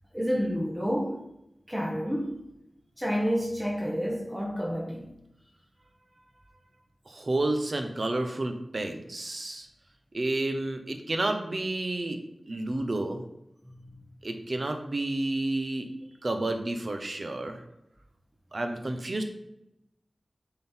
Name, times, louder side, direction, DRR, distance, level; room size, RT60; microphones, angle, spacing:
voice 1, 0.1-1.2 1.7-2.4 3.0-5.1 13.8-13.9, equal, 10° right, -3 dB, 1.1 m, -29 dB
voice 2, 7.1-9.7 10.1-12.2 12.5-13.2 14.2-15.9 16.2-17.6 18.5-19.2, right 2 dB, 55° right, 6 dB, 0.9 m, -30 dB
7.3 x 3.9 x 4.4 m, 0.85 s
wide cardioid pair, 60°, 0 cm